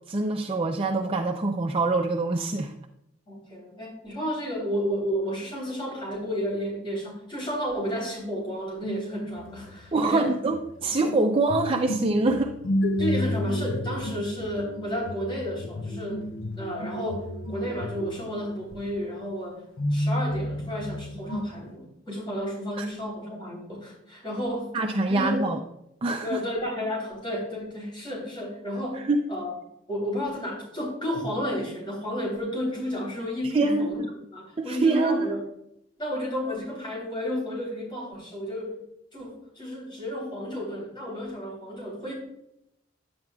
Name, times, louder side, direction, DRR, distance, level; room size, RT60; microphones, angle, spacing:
voice 1, 0.1-2.7 9.9-12.5 22.8-22.9 24.7-25.6 26.0-26.4 28.9-29.3 33.5-34.1 34.6-35.3, right 2 dB, 30° right, 2 dB, 0.5 m, -25 dB
voice 2, 3.3-10.3 12.2-12.3 13.0-16.3 16.6-19.6 19.9-24.7 25.1-25.5 26.2-29.0 29.3-29.6 29.9-34.0 34.3-35.4 36.0-38.7 39.1-42.1, equal, 25° left, -3 dB, 3.4 m, -32 dB
sound 1, 8.8-19.2 19.8-21.7, left 1 dB, 85° left, 0.7 m, -32 dB
10.5 x 8.6 x 2.4 m, 0.80 s
head